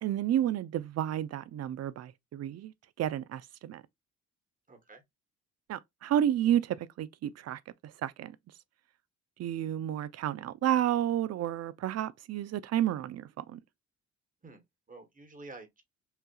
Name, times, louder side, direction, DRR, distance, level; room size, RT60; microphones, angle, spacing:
voice 1, 0.0-2.7 3.0-3.8 5.7-8.4 9.4-13.6, right 11 dB, 55° right, 0.5 m, -31 dB
voice 2, 4.7-5.0 14.4-15.8, right 3 dB, 25° right, 1.3 m, -50 dB
5.6 x 2.4 x 2.3 m
cardioid pair, 90°, 30 cm